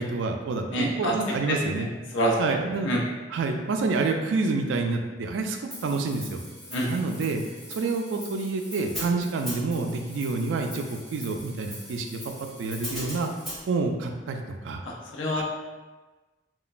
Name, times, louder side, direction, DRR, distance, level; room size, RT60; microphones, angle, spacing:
voice 1, 0.0-1.9 2.4-3.0 3.3-6.4 6.9-7.4 7.7-12.3 12.6-13.3 13.7-14.8 15.3-15.4, right 3 dB, 85° right, 4 dB, 0.3 m, -28 dB
voice 2, 0.7-1.1 1.5-1.6 2.1-2.3 2.8-3.0 6.7-6.9 14.9-15.4, equal, 85° left, -2 dB, 0.5 m, -26 dB
Hi-hat, 5.7-13.6, equal, ahead, 1.2 m, -40 dB
3.0 x 2.1 x 2.4 m, 1.2 s
head